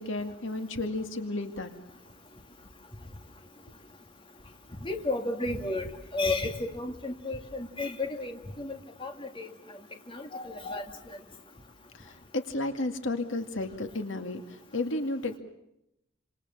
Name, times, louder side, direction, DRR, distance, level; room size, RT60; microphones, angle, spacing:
voice 1, 0.0-1.7 11.9-15.4, left 2 dB, 70° left, 7 dB, 2.3 m, -33 dB
voice 2, 4.8-9.5 10.1-10.8, left 2 dB, 25° left, 4 dB, 2.6 m, -33 dB
29.0 x 27.0 x 7.3 m, 0.84 s
head